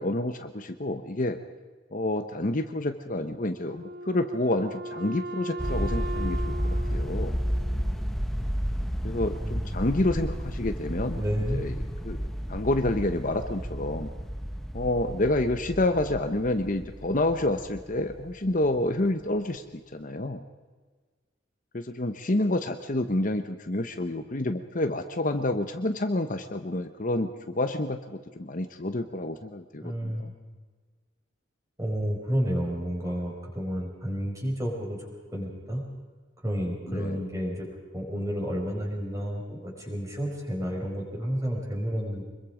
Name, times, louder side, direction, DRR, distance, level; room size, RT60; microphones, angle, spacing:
voice 1, 0.0-1.4 1.9-6.6 6.9-7.4 9.0-11.2 11.5-11.7 12.0-12.2 12.5-14.1 14.7-20.4 21.7-30.3 36.9-37.2, left 1 dB, 45° left, 7 dB, 1.0 m, -28 dB
Wind instrument woodwind instrument, 3.6-8.1, right 1 dB, 60° right, 1.1 m, -38 dB
sound 1, 5.6-18.9, equal, ahead, 1.1 m, -32 dB
voice 2, 11.1-11.6 29.8-30.2 31.8-35.8 36.4-37.7 37.9-42.2, equal, 15° right, -1 dB, 5.6 m, -31 dB
25.0 x 22.0 x 5.1 m, 1.4 s
head